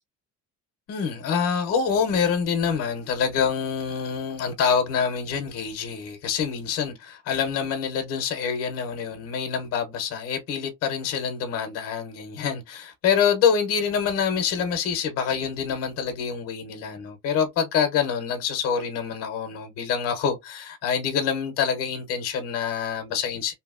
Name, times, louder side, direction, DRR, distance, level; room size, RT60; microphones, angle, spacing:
voice 1, 0.9-23.5, left 7 dB, 50° left, 0.7 m, -26 dB
2.7 x 2.6 x 2.4 m
cardioid pair, 160°, 31 cm